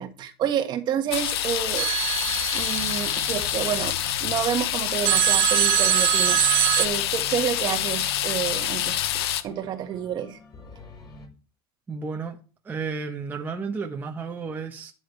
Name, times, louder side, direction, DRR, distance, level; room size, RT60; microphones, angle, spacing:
voice 1, 0.0-1.9 2.5-3.9 4.2-10.4, right 9 dB, 35° right, 1.5 m, -29 dB
sound 1, 1.1-9.4, left 12 dB, 80° left, 1.0 m, -27 dB
sound 2, 1.8-4.0 5.1-6.9, right 18 dB, 55° right, 0.9 m, -23 dB
sound 3, 2.6-11.3, right 1 dB, 35° left, 4.9 m, -48 dB
voice 2, 11.9-12.4 12.6-14.9, right 4 dB, 15° right, 1.3 m, -32 dB
12.5 x 9.0 x 3.3 m
supercardioid pair, 140°, 13 cm